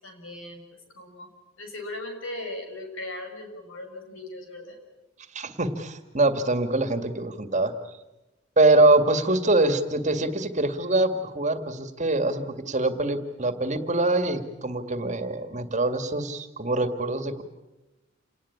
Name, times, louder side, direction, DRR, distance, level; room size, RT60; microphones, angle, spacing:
voice 1, 0.0-0.6 0.9-1.3 1.6-4.8, left 2 dB, 85° left, 5 dB, 6.5 m, -38 dB
voice 2, 5.3-7.7 8.6-17.4, right 2 dB, 35° right, 9 dB, 2.1 m, -24 dB
28.5 x 19.5 x 8.7 m, 1.0 s
head